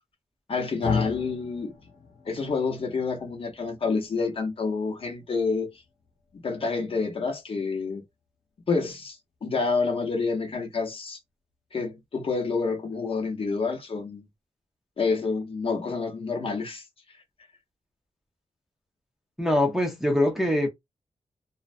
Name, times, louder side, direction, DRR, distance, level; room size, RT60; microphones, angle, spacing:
voice 1, 0.5-1.7 2.3-5.7 6.4-8.0 8.7-11.2 11.7-14.2 15.0-16.8, left 4 dB, 45° left, 0.7 m, -28 dB
sound 1, 0.8-9.1, left 5 dB, 85° left, 1.0 m, -38 dB
voice 2, 19.4-20.7, left 1 dB, 5° right, 0.5 m, -23 dB
2.5 x 2.1 x 2.5 m
wide cardioid pair, 175°, 13 cm